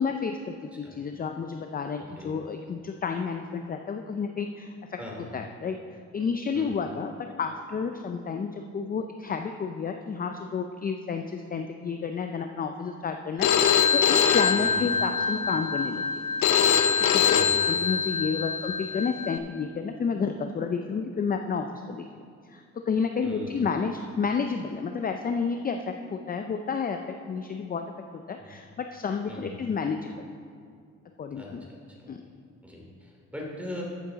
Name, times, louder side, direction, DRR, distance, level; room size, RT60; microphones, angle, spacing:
voice 1, 0.0-5.8 6.1-16.0 17.1-17.2 17.6-22.1 22.5-27.8 28.1-30.2 31.2-31.6 32.1-32.2, left 5 dB, 30° left, 5 dB, 0.5 m, -31 dB
voice 2, 5.0-5.3 6.5-6.7 14.6-14.8 17.2-17.8 23.2-23.6 28.4-28.5 29.3-29.5 31.3-32.0 32.6-33.8, left 1 dB, 5° right, -2 dB, 2.8 m, -40 dB
Telephone, 13.4-19.4, left 7 dB, 90° left, 0.7 m, -23 dB
14.0 x 7.2 x 4.0 m, 2.2 s
cardioid pair, 90°, 30 cm